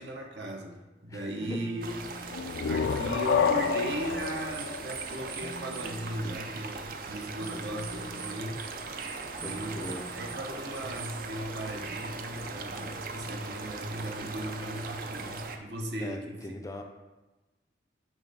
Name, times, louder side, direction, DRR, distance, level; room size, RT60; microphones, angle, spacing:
voice 1, 0.0-1.9 2.6-8.6 9.4-16.6, right 1 dB, 70° right, 1 dB, 1.0 m, -37 dB
voice 2, 1.1-1.6 2.5-2.7 6.2-6.4 9.4-10.0 16.0-16.8, left 1 dB, 20° left, 4 dB, 0.4 m, -41 dB
Telephone, 1.4-2.5 3.4-4.5 5.4-6.5 7.4-8.5 9.4-10.5, left 1 dB, 20° right, 0.9 m, -48 dB
sound 1, 1.8-15.6, right 4 dB, 50° right, 0.4 m, -39 dB
sound 2, 2.3-5.9, left 6 dB, 90° left, 0.3 m, -29 dB
8.9 x 3.2 x 4.0 m, 1.1 s
head